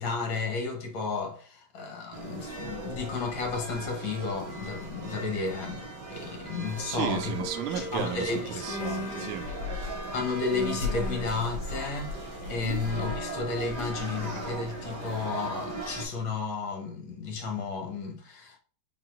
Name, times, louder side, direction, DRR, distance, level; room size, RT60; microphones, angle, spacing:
voice 1, 0.0-7.4 7.8-8.7 10.1-18.6, left 4 dB, 65° left, 1.8 m, -33 dB
sound 1, 2.1-16.1, right 1 dB, 55° right, 1.7 m, -37 dB
voice 2, 6.9-9.5 12.6-12.8, right 8 dB, 80° right, 1.4 m, -34 dB
Female speech woman speaking, 8.6-9.3 10.4-11.9 12.4-13.3, left 1 dB, 80° left, 0.6 m, -38 dB
4.5 x 4.1 x 2.6 m
omnidirectional pair, 2.4 m